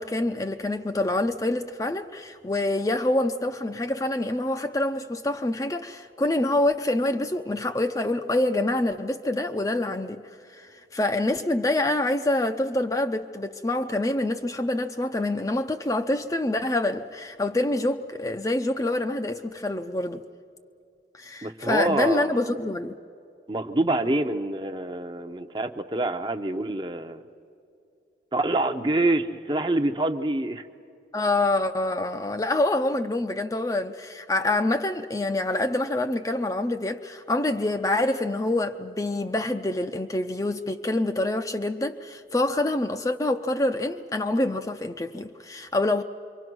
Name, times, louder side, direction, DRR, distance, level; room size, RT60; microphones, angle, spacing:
voice 1, 0.0-10.2 10.5-20.2 21.1-22.9 31.1-46.0, left 2 dB, 20° left, 0.5 m, -26 dB
voice 2, 21.4-22.6 23.5-27.2 28.3-30.6, right 2 dB, 25° right, 0.7 m, -26 dB
26.5 x 24.0 x 6.1 m
head